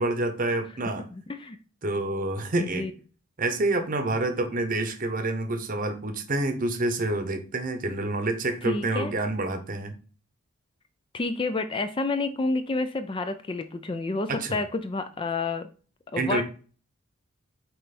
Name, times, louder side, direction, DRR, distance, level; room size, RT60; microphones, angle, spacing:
voice 1, 0.0-1.1 1.8-2.9 3.4-9.9 14.3-14.6 16.1-16.4, right 2 dB, 40° right, 8 dB, 0.8 m, -28 dB
voice 2, 0.8-1.6 2.6-2.9 8.6-9.1 11.1-15.7 16.1-16.4, left 3 dB, 25° left, 9 dB, 0.4 m, -29 dB
5.5 x 4.2 x 4.2 m, 0.39 s
head